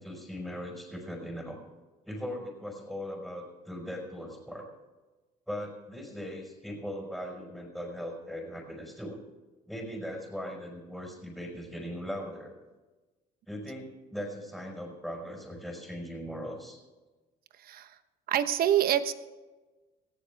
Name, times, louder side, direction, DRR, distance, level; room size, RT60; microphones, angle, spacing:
voice 1, 0.0-1.6 2.0-4.6 5.5-9.2 9.6-12.5 13.5-16.8, equal, ahead, -1 dB, 4.8 m, -39 dB
voice 2, 17.6-18.0 18.3-19.1, right 11 dB, 60° right, 11 dB, 1.1 m, -26 dB
19.5 x 14.5 x 3.5 m, 1.2 s
cardioid pair, 110°, 17 cm